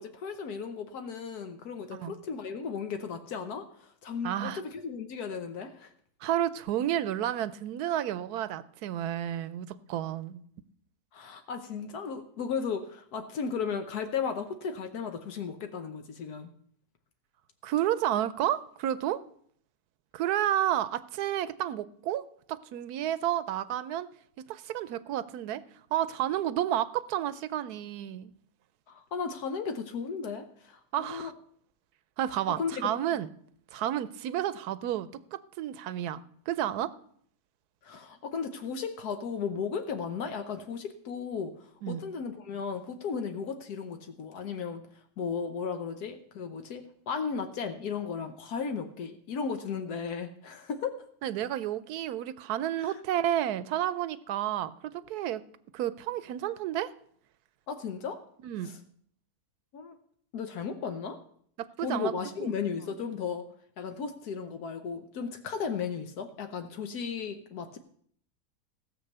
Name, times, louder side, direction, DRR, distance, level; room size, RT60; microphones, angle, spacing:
voice 1, 0.0-5.9 11.1-16.5 28.9-31.3 32.6-32.9 37.8-44.8 45.2-51.0 52.8-53.0 57.7-58.2 58.6-58.8 59.7-60.0 60.3-61.2 61.8-63.5 63.8-67.8, left 6 dB, 85° left, 7 dB, 1.5 m, -35 dB
voice 2, 4.2-4.6 6.2-10.4 17.6-19.2 20.1-22.2 22.5-24.1 24.5-25.6 25.9-28.3 30.9-31.3 32.2-33.3 33.7-36.2 36.5-36.9 41.8-42.0 51.2-55.4 55.7-56.9 58.4-58.7 61.8-62.1 62.4-62.5, right 11 dB, 85° right, 17 dB, 1.2 m, -31 dB
15.5 x 6.8 x 6.7 m, 0.62 s
omnidirectional pair, 1.6 m